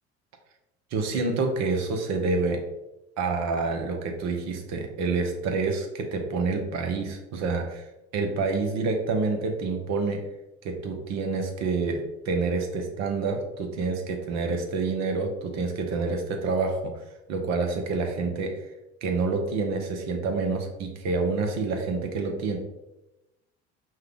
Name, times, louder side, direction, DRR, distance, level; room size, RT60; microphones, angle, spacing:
voice 1, 0.9-2.6 3.2-7.9 8.1-10.3 10.6-18.7 19.0-22.6, right 4 dB, 55° right, 4 dB, 1.0 m, -28 dB
5.4 x 2.3 x 3.6 m, 0.97 s
hypercardioid pair, 70°, 34 cm